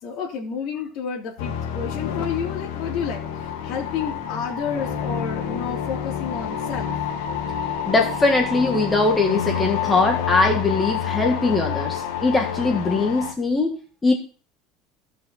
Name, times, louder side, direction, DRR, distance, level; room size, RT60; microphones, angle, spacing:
voice 1, 0.0-6.9, left 6 dB, 50° left, -5 dB, 3.3 m, -30 dB
sound 1, 1.4-13.3, left 8 dB, 90° left, 1.9 m, -28 dB
voice 2, 7.9-13.8 14.0-14.1, left 3 dB, 15° left, 3 dB, 1.6 m, -21 dB
15.5 x 6.1 x 4.1 m, 0.37 s
cardioid pair, 150°, 0 cm